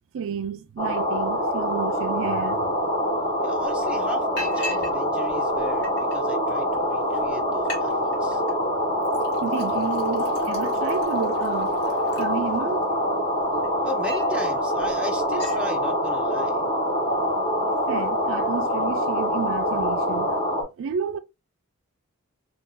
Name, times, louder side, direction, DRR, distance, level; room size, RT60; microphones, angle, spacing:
voice 1, 0.1-2.7 9.4-11.7 12.2-12.8 17.7-20.3 20.8-21.2, right 6 dB, 60° right, 0.3 m, -31 dB
sound 1, 0.8-20.6, equal, 25° left, 1.2 m, -25 dB
Liquid, 3.2-3.3 3.6-3.9 4.4-5.0 5.3-6.2 6.8-6.9 7.2-7.3 7.5-7.8 8.1-8.5 9.0-12.8 13.4-14.4 14.8-14.9 15.2-15.6, left 1 dB, 50° left, 1.4 m, -39 dB
voice 2, 3.4-8.4 13.8-16.7, equal, 5° right, 0.6 m, -36 dB
2.5 x 2.4 x 3.6 m
head